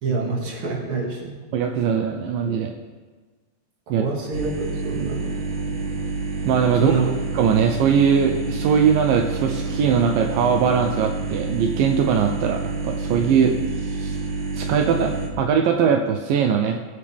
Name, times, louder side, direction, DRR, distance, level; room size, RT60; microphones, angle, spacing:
voice 1, 0.0-1.3 3.9-5.3 6.8-7.1, right 4 dB, 40° right, -2 dB, 2.7 m, -26 dB
voice 2, 1.5-2.7 3.9-4.0 6.5-7.1 7.3-14.2 14.6-16.8, right 7 dB, 80° right, 4 dB, 2.3 m, -21 dB
sound 1, 4.3-15.3, right 3 dB, 55° right, 2.8 m, -28 dB
22.0 x 8.2 x 3.5 m, 1.3 s
omnidirectional pair, 4.1 m